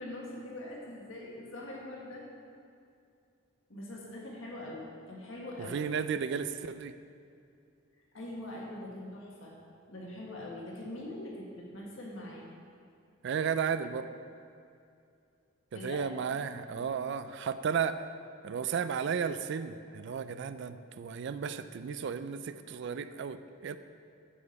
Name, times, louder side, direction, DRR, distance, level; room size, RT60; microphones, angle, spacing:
voice 1, 0.0-2.2 3.7-5.8 8.1-9.5 9.9-12.5 15.7-16.0 16.3-16.9, left 1 dB, 70° left, -3 dB, 1.6 m, -43 dB
voice 2, 5.6-6.9 13.2-14.1 15.7-18.1 18.4-23.8, right 6 dB, 60° right, 12 dB, 0.3 m, -34 dB
8.4 x 6.9 x 4.2 m, 2.4 s
head